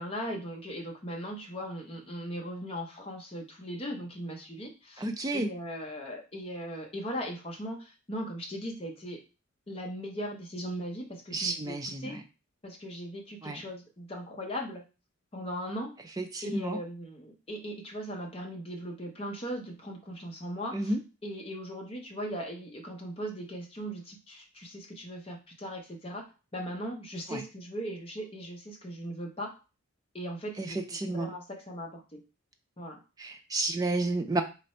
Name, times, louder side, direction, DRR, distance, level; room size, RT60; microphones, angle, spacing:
voice 1, 0.0-5.0 5.3-9.2 9.7-11.7 12.0-12.2 12.6-14.8 15.3-15.9 16.4-20.8 21.2-26.2 26.5-29.5 30.1-30.8 31.1-32.2 32.8-33.0, equal, 25° left, 1 dB, 0.7 m, -38 dB
voice 2, 5.0-5.5 11.3-12.2 13.4-13.6 16.2-16.8 20.7-21.0 27.3-27.4 30.6-31.3 33.2-34.4, right 2 dB, 15° right, 6 dB, 0.3 m, -31 dB
3.1 x 2.5 x 4.2 m, 0.31 s
head